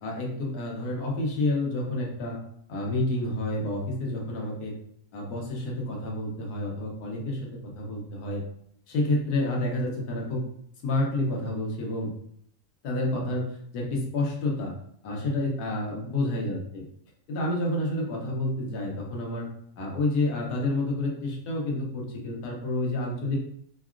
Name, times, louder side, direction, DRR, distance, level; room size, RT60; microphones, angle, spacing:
voice 1, 0.0-2.4 2.7-4.7 5.1-7.5 7.7-8.4 8.9-10.4 10.8-12.1 12.8-14.7 15.0-16.8 17.3-19.5 19.8-23.4, left 2 dB, 85° left, -2 dB, 1.4 m, -29 dB
4.5 x 2.2 x 2.4 m, 0.69 s
omnidirectional pair, 1.6 m